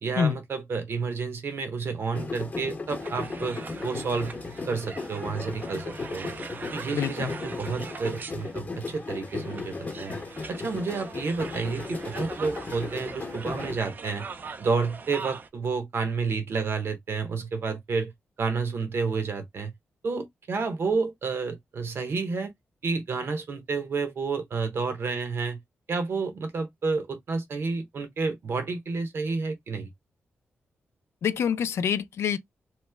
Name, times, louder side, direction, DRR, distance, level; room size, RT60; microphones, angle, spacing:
voice 1, 0.0-4.4 4.7-6.3 6.7-10.2 10.5-14.2 14.6-18.1 18.4-19.7 20.0-22.5 22.8-25.6 25.9-29.9, right 4 dB, 60° right, 1.0 m, -30 dB
sound 1, 2.1-13.8, left 3 dB, 40° left, 0.9 m, -36 dB
sound 2, 3.0-15.5, right 4 dB, 45° right, 0.4 m, -42 dB
voice 2, 6.9-7.3 31.2-32.4, left 7 dB, 80° left, 0.4 m, -26 dB
3.0 x 2.1 x 3.3 m
cardioid pair, 95°, 4 cm